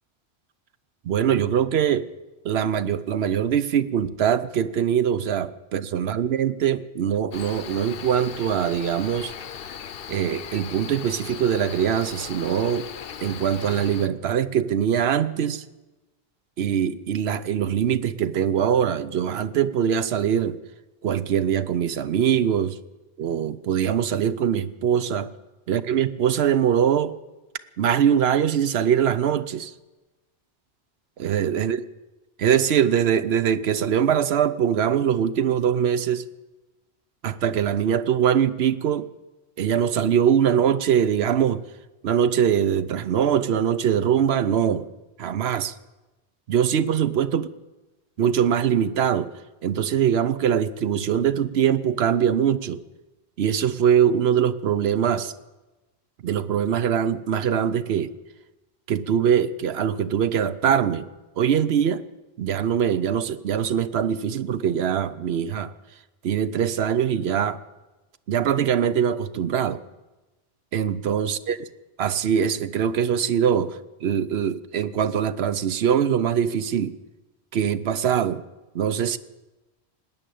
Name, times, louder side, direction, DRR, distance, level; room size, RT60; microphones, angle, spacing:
voice 1, 1.0-2.1 2.4-9.3 10.1-12.9 13.2-15.6 16.6-20.6 21.0-22.8 23.2-25.3 25.7-27.2 27.8-29.7 31.2-31.8 32.4-36.3 37.2-39.1 39.6-41.6 42.0-44.9 45.2-45.7 46.5-47.5 48.2-49.3 49.6-52.8 53.4-55.3 56.2-58.1 58.9-61.1 61.4-62.0 62.4-65.7 66.2-67.6 68.3-69.8 70.7-71.7 72.0-76.9 77.5-78.4 78.7-79.2, right 8 dB, 70° right, 14 dB, 0.9 m, -22 dB
Cricket, 7.3-14.1, left 8 dB, 60° left, 0.8 m, -38 dB
19.0 x 9.0 x 8.3 m, 1.1 s
omnidirectional pair, 1.1 m